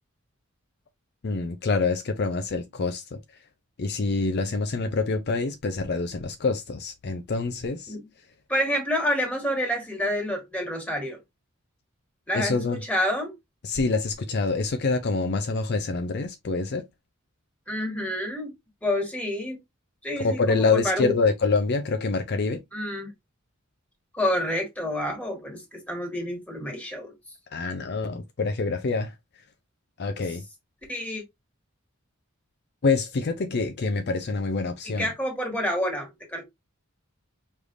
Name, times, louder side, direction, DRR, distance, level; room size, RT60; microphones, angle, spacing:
voice 1, 1.2-3.2 3.8-7.9 12.3-12.8 13.6-16.8 20.2-22.6 27.5-29.1 30.0-30.4 32.8-35.1, left 3 dB, 50° left, 0.5 m, -26 dB
voice 2, 8.5-11.2 12.3-13.3 17.7-18.5 18.8-19.6 20.0-21.1 22.7-23.1 24.1-27.1 30.9-31.2 34.8-36.4, left 1 dB, 5° left, 1.6 m, -28 dB
4.9 x 3.3 x 2.6 m
head